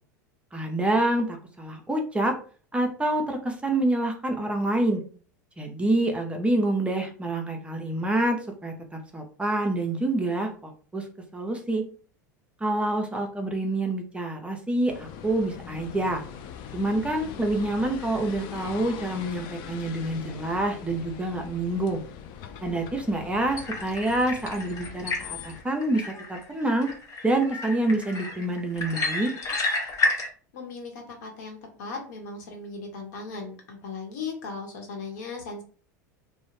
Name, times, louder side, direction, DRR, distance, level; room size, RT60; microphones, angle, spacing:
voice 1, 0.5-2.4 2.7-5.0 5.6-11.0 11.3-11.8 12.6-16.2 16.7-22.0 22.6-26.9 27.2-29.3, right 1 dB, 10° right, 3 dB, 0.5 m, -27 dB
sound 1, 14.9-25.6, left 8 dB, 50° left, 0.4 m, -41 dB
sound 2, 23.5-30.3, left 3 dB, 35° left, 0.8 m, -31 dB
voice 2, 30.5-35.6, left 4 dB, 65° left, 2 dB, 0.9 m, -37 dB
2.3 x 2.1 x 3.1 m, 0.41 s
hypercardioid pair, 85°, 10 cm